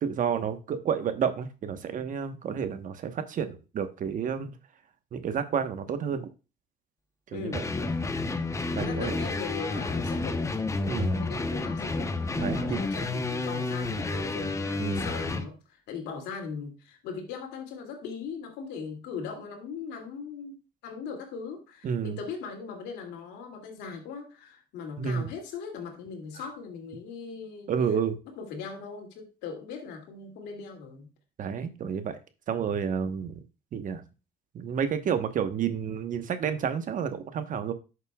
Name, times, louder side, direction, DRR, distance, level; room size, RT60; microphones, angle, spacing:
voice 1, 0.0-4.5 5.1-6.3 7.3-7.6 8.8-9.2 10.9-11.1 12.4-12.8 14.8-15.1 21.8-22.2 25.0-25.3 27.7-28.2 31.4-32.2 32.5-33.4 33.7-34.0 34.5-37.7, right 7 dB, 50° right, 10 dB, 1.1 m, -30 dB
voice 2, 7.3-7.7 8.8-10.5 10.8-12.1 12.5-20.6 20.8-27.7 28.4-31.1, left 5 dB, 85° left, 3 dB, 2.5 m, -39 dB
sound 1, 7.5-15.5, left 3 dB, 20° left, 0.9 m, -30 dB
11.0 x 6.6 x 2.3 m, 0.30 s
cardioid pair, 110°, 17 cm